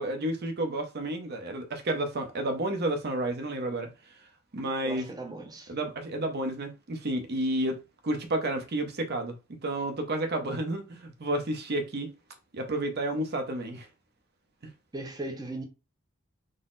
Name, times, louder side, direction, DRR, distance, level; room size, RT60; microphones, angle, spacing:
voice 1, 0.0-3.9 4.5-5.1 5.7-12.2 12.5-13.9 14.6-14.7, right 1 dB, 50° right, 0.7 m, -31 dB
voice 2, 4.8-5.7 14.9-15.7, right 2 dB, 20° right, 0.5 m, -37 dB
3.9 x 2.0 x 3.8 m
head